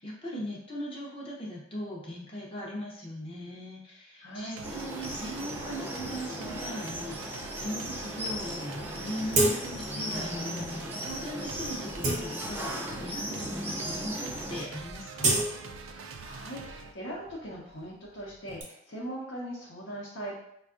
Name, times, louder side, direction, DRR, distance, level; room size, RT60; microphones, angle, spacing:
voice 1, 0.0-15.4, equal, 30° left, -3 dB, 0.6 m, -39 dB
voice 2, 4.2-4.7 15.9-20.4, right 1 dB, 70° left, -7 dB, 0.7 m, -40 dB
sound 1, 4.5-16.9, right 5 dB, 85° right, 0.4 m, -44 dB
sound 2, 4.6-14.6, equal, 10° right, 0.4 m, -37 dB
sound 3, 9.3-10.0 10.4-10.5 11.2-11.3 11.7-12.9 13.5-13.6 13.9-14.3 14.5-16.4 16.7-18.6, right 2 dB, 40° right, 0.7 m, -31 dB
4.4 x 2.3 x 2.4 m, 0.76 s
head